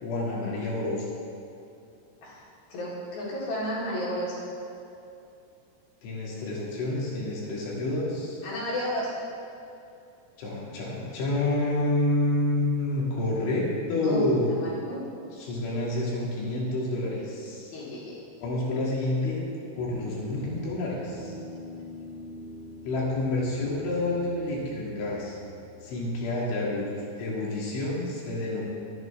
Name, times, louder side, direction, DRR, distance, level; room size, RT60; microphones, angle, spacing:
voice 1, 0.0-1.1 6.0-8.4 10.4-14.5 15.3-17.7 18.4-19.4 19.8-21.3 22.9-25.4 25.8-28.7, left 2 dB, 85° left, -5 dB, 5.3 m, -28 dB
voice 2, 2.7-4.3 8.4-9.1 14.0-15.0 15.7-15.8 17.7-18.2, equal, 55° left, -8 dB, 5.6 m, -32 dB
Guitar, 19.7-26.3, left 1 dB, 35° left, 4.6 m, -45 dB
23.0 x 10.5 x 3.6 m, 2.7 s
omnidirectional pair, 5.2 m